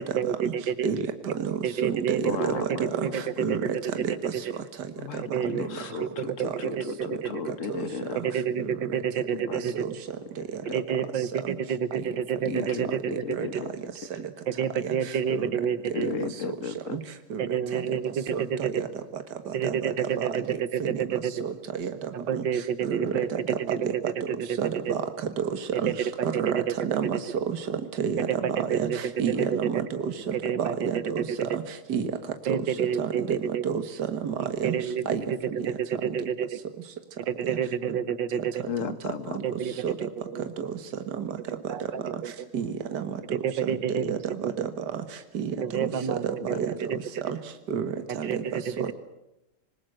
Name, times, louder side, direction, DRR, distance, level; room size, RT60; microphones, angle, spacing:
voice 1, 0.0-0.9 1.6-2.2 2.5-3.1 3.5-3.7 4.1-4.2 5.3-5.6 6.0-6.1 6.4-7.3 8.2-9.8 10.7-13.4 14.5-16.3 17.4-18.7 19.5-21.3 22.1-23.9 24.3-24.6 24.9-25.0 25.9-26.6 28.3-29.0 29.3-29.8 30.3-30.8 31.3-31.6 32.5-33.7 34.4-35.0 35.7-36.5 37.3-38.6 39.4-40.5 41.5-42.5 43.3-44.7 45.6-47.0 48.1-48.9, right 8 dB, 85° right, 14 dB, 1.9 m, -29 dB
voice 2, 0.8-3.6 4.0-4.3 5.6-5.7 6.4-6.6 7.0-7.1 7.7-7.9 8.2-8.3 8.6-8.8 9.5-9.9 10.5-10.8 11.3-11.6 11.9-12.0 12.5-12.7 13.1-13.4 14.1-14.2 14.8-15.0 15.3-15.5 16.4-16.5 16.9-17.0 17.3-17.4 17.7-17.8 18.3-18.9 19.6-21.0 21.4-22.4 22.8-23.9 24.6-25.0 25.4-25.5 25.8-25.9 26.2-27.2 27.5-28.2 28.7-31.6 31.9-32.1 32.5-33.8 34.1-34.3 34.6-34.8 35.1-35.2 36.1-36.2 39.8-39.9 40.6-40.7 41.2-41.3 42.5-43.4 43.9-44.2 44.9-45.0 45.3-45.6 46.6-46.7 47.2-47.4 47.7-48.3, right 7 dB, 65° right, 8 dB, 2.1 m, -30 dB
voice 3, 2.2-3.8 5.0-8.4 9.3-9.7 10.7-11.1 12.5-13.7 15.9-17.0 38.7-39.4 46.5-46.6, left 6 dB, 45° left, 12 dB, 1.6 m, -35 dB
26.0 x 20.5 x 7.8 m, 0.89 s
omnidirectional pair, 1.9 m